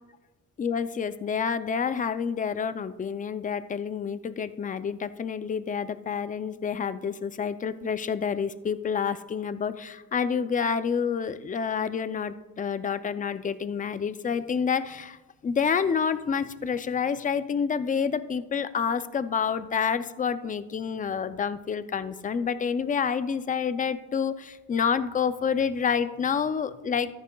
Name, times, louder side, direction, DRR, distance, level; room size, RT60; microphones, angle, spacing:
voice 1, 0.6-15.2 15.4-27.1, left 6 dB, 25° left, 12 dB, 0.4 m, -28 dB
13.5 x 9.5 x 2.3 m, 1.1 s
cardioid pair, 130°, 38 cm